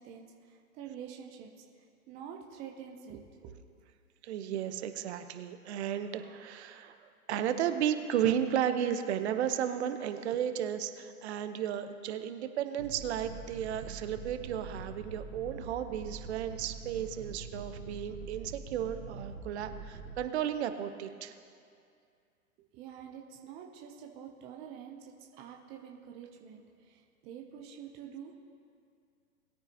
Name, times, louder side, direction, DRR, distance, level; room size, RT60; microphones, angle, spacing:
voice 1, 0.0-1.6 2.1-3.5 22.7-28.3, right 8 dB, 15° right, 1 dB, 0.5 m, -47 dB
voice 2, 4.2-7.0 7.3-21.3, right 10 dB, 45° right, 9 dB, 0.9 m, -34 dB
sound 1, 12.8-20.2, right 4 dB, 80° right, 1.6 m, -44 dB
20.0 x 9.1 x 2.8 m, 2.3 s
hypercardioid pair, 125°, 44 cm